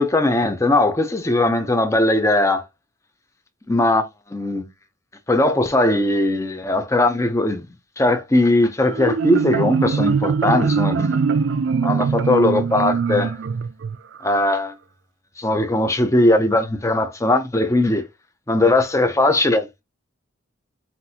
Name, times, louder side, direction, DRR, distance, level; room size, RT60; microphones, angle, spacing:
voice 1, 0.0-2.6 3.7-4.0 4.3-4.7 5.3-7.7 8.0-11.4 11.8-13.4 14.2-14.7 15.4-18.1 18.5-19.7, left 2 dB, 15° left, 0.6 m, -19 dB
Marimba xylophone, 8.8-14.4, right 5 dB, 70° right, 0.4 m, -22 dB
5.9 x 2.6 x 2.8 m
head